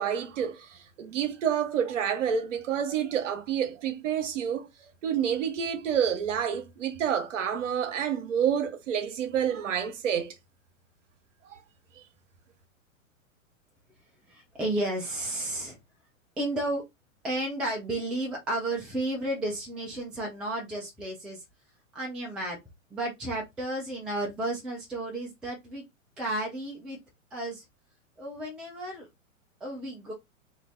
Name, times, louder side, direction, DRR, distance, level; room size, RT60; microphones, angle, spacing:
voice 1, 0.0-4.7 5.0-10.3 11.5-11.6, right 8 dB, 65° right, 1.0 m, -28 dB
voice 2, 14.3-15.8 16.4-16.8 17.2-21.4 21.9-22.6 22.9-25.8 26.2-27.0 27.3-27.6 28.2-29.1 29.6-30.1, right 1 dB, ahead, 0.3 m, -32 dB
2.6 x 2.6 x 3.1 m
figure-of-eight pair, 105°, 40 cm